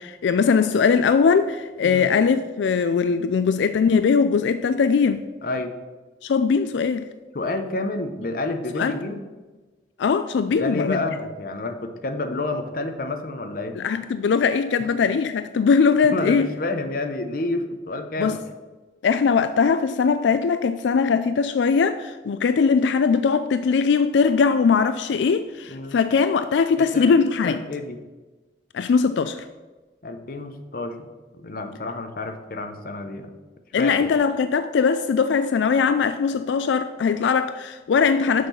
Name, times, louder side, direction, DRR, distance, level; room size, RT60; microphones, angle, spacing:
voice 1, 0.0-5.2 6.2-7.1 8.8-9.0 10.0-11.1 13.8-16.5 18.2-18.4 19.0-27.6 28.7-29.5 33.7-38.5, left 5 dB, 85° left, 0.4 m, -20 dB
voice 2, 5.4-5.7 7.3-9.2 10.5-13.8 16.1-18.4 25.7-26.0 26.9-27.1 27.4-28.0 30.0-31.0 31.4-33.3 33.8-34.1, left 2 dB, 50° left, 0.7 m, -29 dB
6.5 x 5.6 x 6.9 m
head